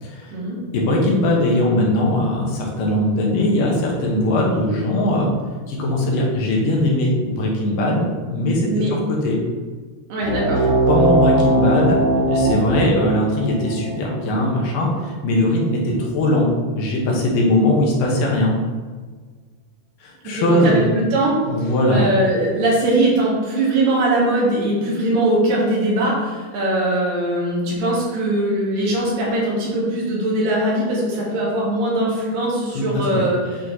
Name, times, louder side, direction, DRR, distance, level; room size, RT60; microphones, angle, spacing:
voice 1, 0.0-0.3 0.7-5.3 5.7-8.0 8.3-9.0 9.2-9.4 10.9-12.0 12.3-16.5 16.7-18.5 20.0-20.8 21.5-22.1 32.7-32.9 33.1-33.2, left 1 dB, 80° left, -2 dB, 2.7 m, -20 dB
voice 2, 8.6-8.9 10.1-10.6 20.2-33.6, right 1 dB, 85° right, -5 dB, 3.2 m, -21 dB
sound 1, 10.2-15.3, right 2 dB, 70° right, 1.6 m, -20 dB
8.2 x 3.0 x 4.0 m, 1.5 s
omnidirectional pair, 3.8 m